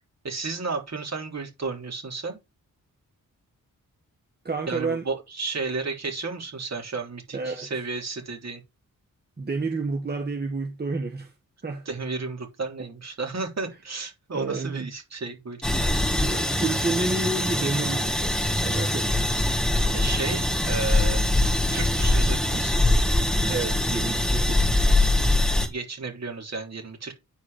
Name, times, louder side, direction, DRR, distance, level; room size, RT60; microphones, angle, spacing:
voice 1, 0.2-2.4 4.7-8.6 11.9-15.6 19.9-21.2 21.7-22.8 25.7-27.1, right 4 dB, 50° right, 3.6 m, -32 dB
voice 2, 4.4-5.1 7.3-7.7 9.4-11.3 11.6-11.9 14.3-14.9 16.2-19.1 23.5-24.7, right 3 dB, 30° right, 1.4 m, -30 dB
sound 1, 15.6-25.7, left 1 dB, ahead, 2.1 m, -23 dB
9.5 x 4.9 x 5.1 m
wide cardioid pair, 105°, 33 cm